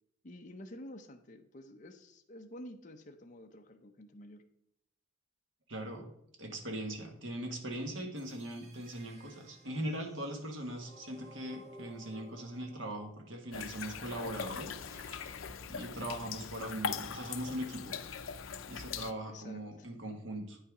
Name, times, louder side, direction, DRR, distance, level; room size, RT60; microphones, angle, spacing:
voice 1, 0.2-4.4 19.3-19.9, left 1 dB, 40° left, 4 dB, 0.7 m, -50 dB
voice 2, 5.7-6.1 6.4-14.8 15.7-18.0 18.7-20.6, right 1 dB, 75° right, 3 dB, 1.6 m, -40 dB
sound 1, 8.2-14.2, equal, 35° right, 1.4 m, -57 dB
sound 2, 13.5-19.1, left 6 dB, 90° left, 0.5 m, -41 dB
Sawing, 14.8-16.7, right 1 dB, 15° right, 1.4 m, -60 dB
8.8 x 5.6 x 4.8 m, 0.77 s
head